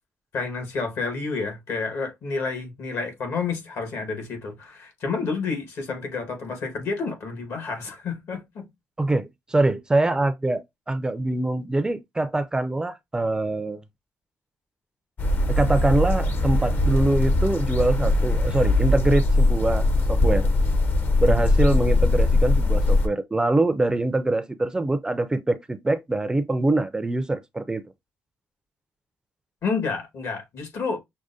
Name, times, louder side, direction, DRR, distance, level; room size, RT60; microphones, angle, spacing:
voice 1, 0.3-8.7 21.2-21.4 23.8-23.9 29.6-31.0, left 4 dB, 70° left, 1.4 m, -30 dB
voice 2, 9.0-13.8 15.5-20.5 21.2-27.8, right 2 dB, 15° right, 0.4 m, -24 dB
sound 1, 15.2-23.1, left 2 dB, 45° left, 0.6 m, -21 dB
6.1 x 2.1 x 2.6 m
cardioid pair, 105°, 5 cm